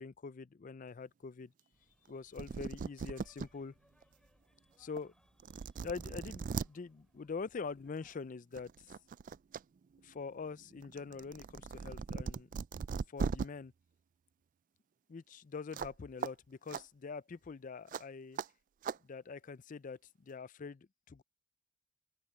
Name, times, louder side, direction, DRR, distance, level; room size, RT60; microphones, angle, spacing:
voice 1, 0.0-1.5 2.1-3.7 4.8-5.1 5.8-8.9 10.0-12.5 13.1-13.7 15.1-18.4 19.0-21.2, left 4 dB, 40° left, 0.4 m, -44 dB
sound 1, 1.7-8.2, equal, 5° left, 6.2 m, -72 dB
sound 2, 2.1-2.2 2.4-3.5 4.0-4.1 5.0-5.1 5.4-6.7 8.0-8.2 8.6-9.6 10.0-13.5 15.7-15.9 16.2-16.3 16.7-16.8 17.9-18.0 18.4-18.5 18.8-19.0, right 5 dB, 40° right, 0.3 m, -39 dB
open air
head